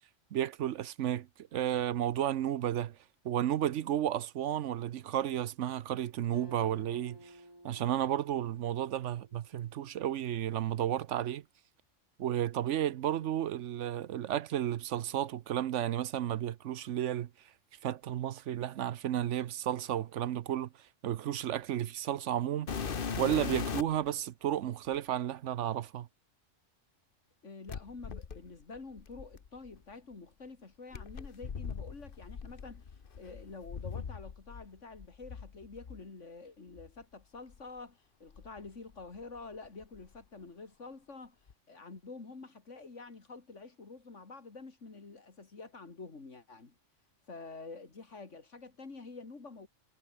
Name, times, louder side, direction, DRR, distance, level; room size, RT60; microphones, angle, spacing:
voice 1, 0.3-3.0 3.2-7.3 7.6-11.4 12.2-17.3 17.8-20.7 21.0-22.8 23.2-26.1, right 11 dB, 75° right, 1.0 m, -32 dB
Acoustic guitar, 6.3-9.9, right 1 dB, 20° right, 5.9 m, -55 dB
sound 1, 22.7-24.1 24.9-25.0 27.7-29.8 30.9-34.7 34.9-36.0 36.8-36.9 37.5-37.6 38.3-39.4 39.6-40.2 41.5-41.6, left 6 dB, 45° left, 1.2 m, -40 dB
voice 2, 27.4-32.9 33.2-41.4 41.7-46.7 47.3-49.7, left 3 dB, 75° left, 3.0 m, -48 dB
omnidirectional pair, 1.3 m